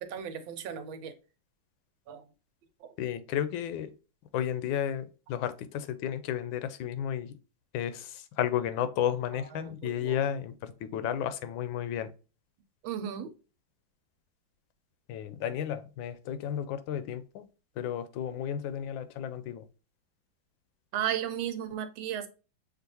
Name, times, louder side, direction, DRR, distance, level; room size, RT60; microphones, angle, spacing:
voice 1, 0.0-1.1 2.1-2.2 2.8-2.9 9.6-10.2 12.8-13.3 20.9-22.3, right 9 dB, 90° right, 9 dB, 1.4 m, -35 dB
voice 2, 3.0-3.9 4.3-7.3 7.7-12.1 15.1-17.5 17.8-19.6, left 10 dB, 90° left, 12 dB, 1.4 m, -33 dB
6.4 x 2.5 x 2.7 m, 0.33 s
omnidirectional pair, 2.1 m